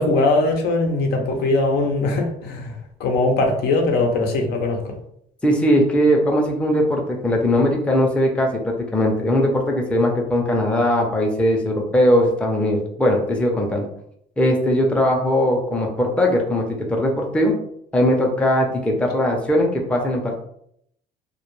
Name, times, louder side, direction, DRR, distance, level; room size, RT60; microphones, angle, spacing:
voice 1, 0.0-4.9, left 2 dB, 75° left, 2 dB, 0.6 m, -21 dB
voice 2, 5.4-13.9 14.4-17.5 17.9-20.4, equal, 5° left, 0 dB, 0.5 m, -19 dB
2.2 x 2.1 x 3.0 m, 0.70 s
cardioid pair, 110°, 17 cm